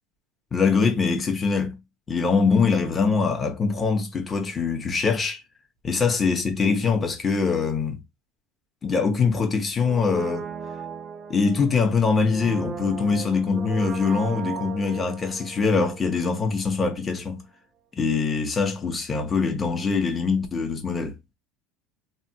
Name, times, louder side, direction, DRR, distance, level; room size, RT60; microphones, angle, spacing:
voice 1, 0.5-1.8 2.1-5.4 5.8-8.0 8.8-10.5 11.3-17.4 18.0-21.2, left 5 dB, 25° left, 0.9 m, -23 dB
Brass instrument, 9.8-16.7 16.9-17.0, right 7 dB, 30° right, 0.5 m, -37 dB
3.2 x 2.3 x 2.8 m
supercardioid pair, 110°, 0 cm